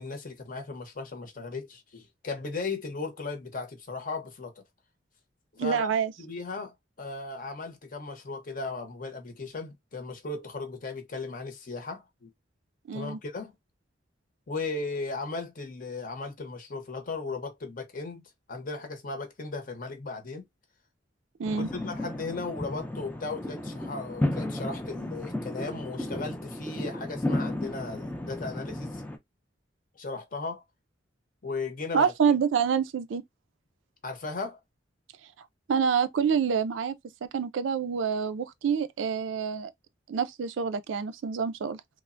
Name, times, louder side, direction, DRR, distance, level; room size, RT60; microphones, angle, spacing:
voice 1, 0.0-4.5 5.5-5.9 6.2-12.3 12.9-13.5 14.5-20.4 21.5-29.0 30.0-30.6 31.4-32.1 34.0-34.6, left 3 dB, 45° left, 0.7 m, -36 dB
voice 2, 5.6-6.1 12.9-13.2 21.4-21.7 31.9-33.2 35.7-36.9 37.2-39.7 40.1-42.0, right 6 dB, 80° right, 0.4 m, -27 dB
sound 1, 21.4-29.2, left 1 dB, 10° left, 0.4 m, -33 dB
3.2 x 2.0 x 2.4 m
head